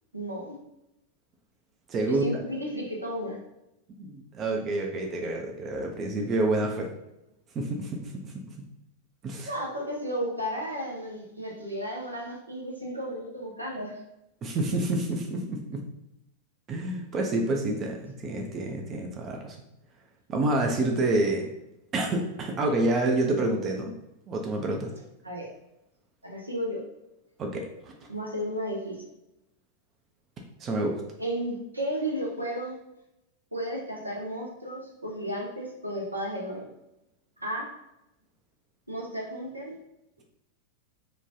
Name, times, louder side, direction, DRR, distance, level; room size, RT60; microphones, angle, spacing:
voice 1, 0.1-0.6 2.1-3.4 9.4-14.0 25.2-25.5 26.2-26.8 28.1-29.0 31.2-32.8 33.5-36.7 37.4-37.7 38.9-39.8, equal, 85° right, -2 dB, 0.6 m, -33 dB
voice 2, 1.9-2.2 4.0-6.9 7.5-8.4 9.2-9.5 14.4-15.8 16.7-19.6 20.3-21.5 21.9-23.9 24.3-24.9 27.4-27.9 30.6-31.0, right 2 dB, 30° right, 1 dB, 0.4 m, -28 dB
3.1 x 2.2 x 2.6 m, 0.89 s
figure-of-eight pair, 90°, 0 cm